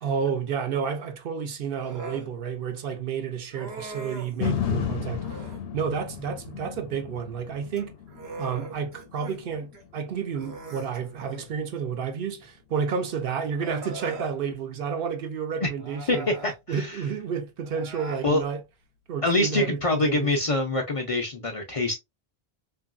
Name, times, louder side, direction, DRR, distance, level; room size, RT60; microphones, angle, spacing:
voice 1, 0.0-5.4 5.7-7.9 8.4-16.3 16.7-18.6 19.1-20.3, right 6 dB, 65° right, 0.8 m, -31 dB
Human voice, 1.8-2.3 3.5-4.4 5.1-5.7 7.6-9.4 9.7-9.9 10.3-11.6 12.8-12.9 13.5-14.4 15.7-16.6 17.6-18.3, right 2 dB, 90° right, 1.1 m, -40 dB
sound 1, 4.4-12.6 13.0-13.1, left 9 dB, 75° left, 0.8 m, -35 dB
voice 2, 16.1-17.0 18.2-18.4 19.2-21.9, left 2 dB, 45° left, 0.5 m, -25 dB
2.9 x 2.6 x 2.3 m
omnidirectional pair, 1.0 m